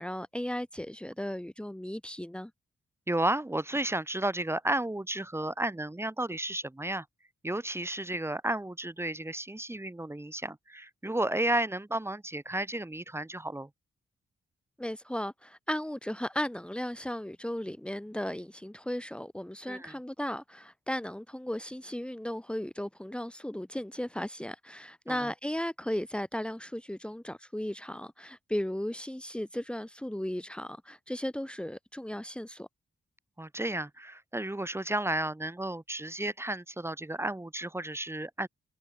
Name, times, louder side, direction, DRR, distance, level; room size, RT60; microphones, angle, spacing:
voice 1, 0.0-2.5 14.8-32.7, left 1 dB, 5° left, 3.6 m, -36 dB
voice 2, 3.1-7.1 7.4-13.7 19.7-19.9 25.1-25.3 33.4-38.5, right 1 dB, 10° right, 4.4 m, -32 dB
cardioid pair, 100°, 21 cm